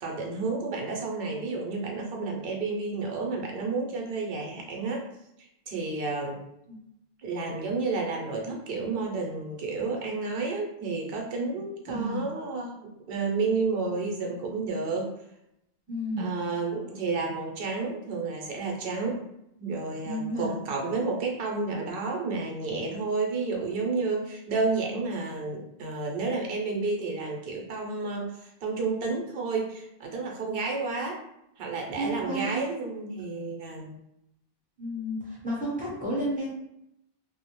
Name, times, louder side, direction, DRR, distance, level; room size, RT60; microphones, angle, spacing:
voice 1, 0.0-5.1 5.4-6.4 7.2-15.1 16.2-19.2 19.6-31.2 31.6-33.9, right 3 dB, 65° right, 0 dB, 0.8 m, -31 dB
voice 2, 11.9-12.2 15.9-16.3 20.0-20.5 31.9-32.6 34.8-36.5, equal, 10° right, -6 dB, 0.8 m, -31 dB
2.3 x 2.0 x 3.0 m, 0.82 s
omnidirectional pair, 1.1 m